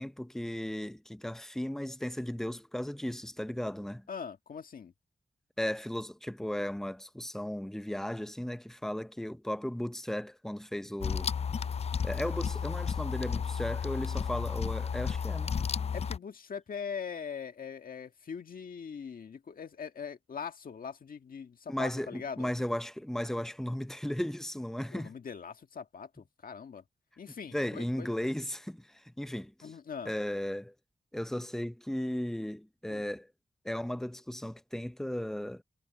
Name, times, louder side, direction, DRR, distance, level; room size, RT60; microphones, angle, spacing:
voice 1, 0.0-4.0 5.6-11.3 12.0-15.6 21.7-25.1 27.5-29.7 30.1-30.7 31.1-33.3 33.6-35.6, left 1 dB, 5° left, 0.7 m, -36 dB
voice 2, 4.1-4.9 15.9-22.5 24.9-26.8 27.2-28.1 29.6-30.1 32.9-33.0, left 6 dB, 75° left, 1.7 m, -41 dB
sound 1, 11.0-16.2, left 6 dB, 45° left, 0.4 m, -32 dB
cardioid pair, 70°, 15 cm